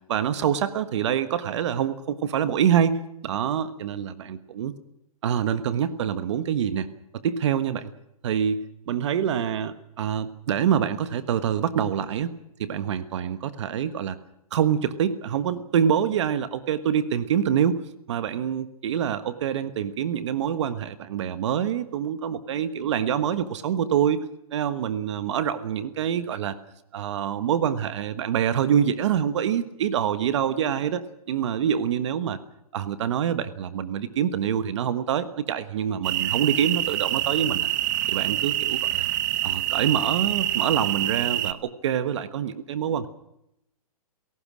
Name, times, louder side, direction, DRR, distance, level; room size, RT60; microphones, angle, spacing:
voice 1, 0.1-4.7 5.2-6.9 7.1-7.9 8.2-12.3 12.6-14.2 14.5-17.8 18.1-24.2 24.5-26.6 26.9-31.0 31.3-32.4 32.7-37.7 38.1-39.1 39.4-43.1, right 9 dB, 50° right, 12 dB, 1.3 m, -26 dB
sound 1, 36.0-41.5, right 14 dB, 30° right, 1.0 m, -26 dB
28.0 x 18.0 x 6.3 m, 0.82 s
hypercardioid pair, 165°, 19 cm